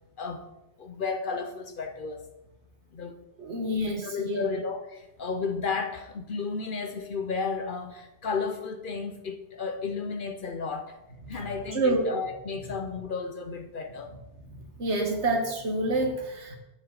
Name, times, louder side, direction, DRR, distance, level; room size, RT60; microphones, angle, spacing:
voice 1, 0.2-0.5 0.8-2.2 2.9-3.2 4.0-11.0 11.3-14.1, left 5 dB, 55° left, 7 dB, 0.7 m, -33 dB
voice 2, 3.4-4.5 11.7-12.0 14.8-16.6, right 2 dB, 70° right, 3 dB, 1.7 m, -27 dB
9.0 x 7.6 x 3.9 m, 0.94 s
omnidirectional pair, 1.2 m